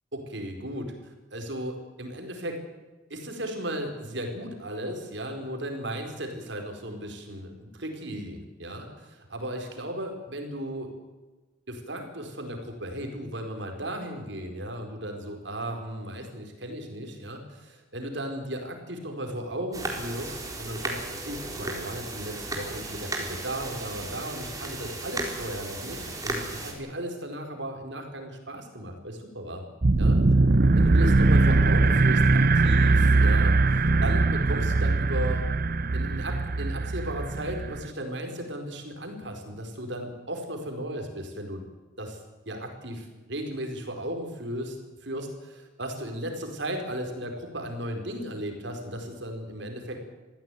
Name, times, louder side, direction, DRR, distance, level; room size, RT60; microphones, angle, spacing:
voice 1, 0.1-2.6 3.1-10.9 11.7-29.6 30.0-30.2 30.7-35.5 35.9-41.6 42.0-42.2 42.5-50.0, right 1 dB, 60° right, 4 dB, 4.6 m, -36 dB
sound 1, 19.7-26.7, right 2 dB, 20° right, 4.3 m, -35 dB
sound 2, 29.8-37.9, right 3 dB, 45° right, 0.7 m, -21 dB
24.0 x 15.5 x 9.3 m, 1.2 s
head